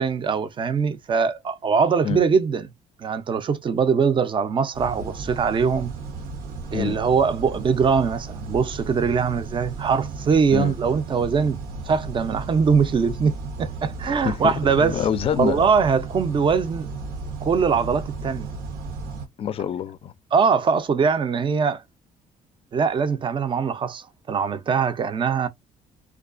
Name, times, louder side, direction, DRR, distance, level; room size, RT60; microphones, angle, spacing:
voice 1, 0.0-2.7 3.0-5.9 6.7-11.6 11.9-15.0 15.3-16.9 17.4-18.5 20.3-21.8 22.7-25.5, right 5 dB, 35° right, 0.5 m, -22 dB
sound 1, 4.7-19.3, right 3 dB, 85° right, 0.9 m, -34 dB
voice 2, 14.2-15.6 19.4-20.1, left 8 dB, 40° left, 0.4 m, -26 dB
2.3 x 2.2 x 2.4 m
cardioid pair, 85°, 15 cm